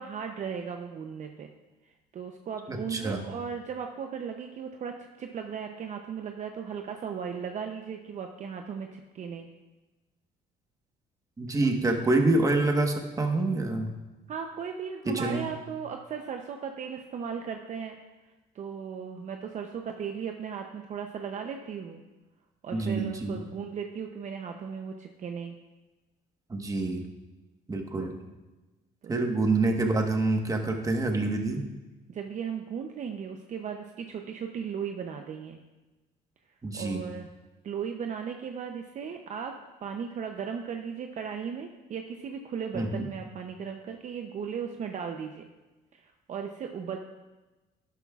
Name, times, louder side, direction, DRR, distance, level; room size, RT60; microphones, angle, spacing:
voice 1, 0.0-1.5 1.9-9.5 14.3-18.0 18.5-22.0 22.6-25.5 29.0-29.3 32.1-35.6 36.7-37.3 37.6-45.5 45.9-47.0, right 7 dB, 45° right, 4 dB, 0.7 m, -36 dB
voice 2, 2.7-3.2 11.4-13.9 15.1-15.5 22.7-23.4 26.5-27.0 27.7-28.1 29.1-31.6 36.6-37.0 42.7-43.0, right 2 dB, 20° right, 3 dB, 1.3 m, -27 dB
11.5 x 11.0 x 2.4 m, 1.1 s
cardioid pair, 110°, 17 cm